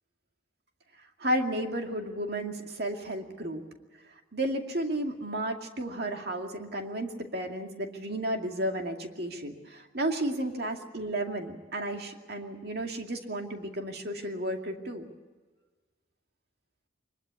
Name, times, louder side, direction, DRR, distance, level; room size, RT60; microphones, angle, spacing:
voice 1, 1.2-3.6 4.3-15.0, right 1 dB, 55° right, 3 dB, 2.4 m, -33 dB
23.5 x 21.0 x 8.3 m, 1.3 s
head